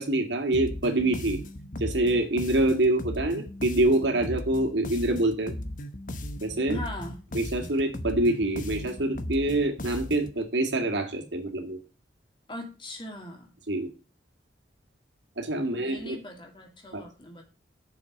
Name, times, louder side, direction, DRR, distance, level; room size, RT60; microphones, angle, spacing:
voice 1, 0.0-1.4 1.8-5.5 6.4-6.8 7.3-11.8 13.7-13.9 15.4-16.2 16.9-17.0, right 1 dB, 85° right, 4 dB, 2.1 m, -26 dB
sound 1, 0.5-10.4, left 1 dB, 45° left, 0.9 m, -37 dB
voice 2, 6.7-7.2 12.5-13.5 15.6-17.4, equal, 25° left, 2 dB, 2.5 m, -40 dB
7.1 x 6.2 x 7.7 m, 0.33 s
head